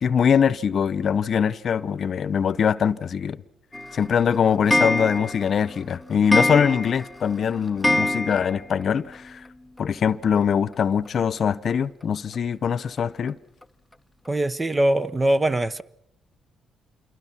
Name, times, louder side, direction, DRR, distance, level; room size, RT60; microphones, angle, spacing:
voice 1, 0.0-3.4 3.9-9.4 9.8-13.4, left 7 dB, 55° left, 0.9 m, -22 dB
Clock, 3.7-8.8 9.1-9.2 9.5-9.6 9.8-9.9 11.1-11.2 11.7-11.8 12.3-12.4 13.0-13.1 13.6-13.7 14.3-14.4, left 1 dB, 5° left, 0.9 m, -25 dB
voice 2, 14.3-15.8, right 1 dB, 20° right, 0.9 m, -22 dB
27.5 x 23.0 x 5.9 m
cardioid pair, 90°, 0 cm